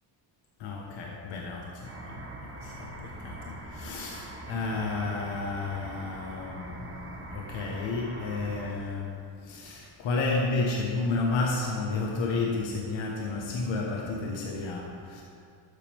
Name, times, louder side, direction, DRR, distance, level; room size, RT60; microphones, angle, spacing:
voice 1, 0.6-15.2, left 3 dB, 65° left, -2 dB, 1.4 m, -32 dB
sound 1, 1.8-8.7, right 2 dB, 30° right, 1.6 m, -43 dB
11.5 x 8.4 x 3.5 m, 2.4 s
cardioid pair, 85°, 48 cm